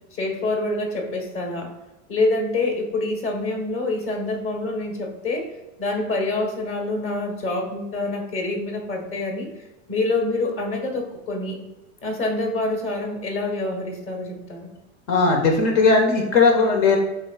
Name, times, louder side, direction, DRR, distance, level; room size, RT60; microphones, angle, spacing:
voice 1, 0.2-1.7 2.1-5.5 5.8-9.5 9.9-11.6 12.0-14.7, left 2 dB, 30° left, 2 dB, 1.6 m, -26 dB
voice 2, 15.1-17.0, left 4 dB, 60° left, 2 dB, 1.4 m, -17 dB
11.0 x 3.9 x 2.4 m, 1.1 s
supercardioid pair, 130°, 40 cm